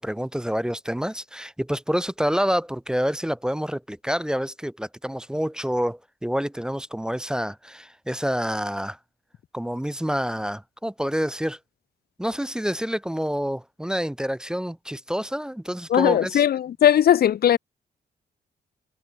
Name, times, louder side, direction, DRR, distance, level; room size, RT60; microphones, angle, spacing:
voice 1, 0.0-9.0 9.5-11.6 12.2-16.4, equal, 5° right, 0.5 m, -27 dB
voice 2, 15.9-17.6, left 10 dB, 65° left, 0.6 m, -18 dB
wide cardioid pair, 140°, 18 cm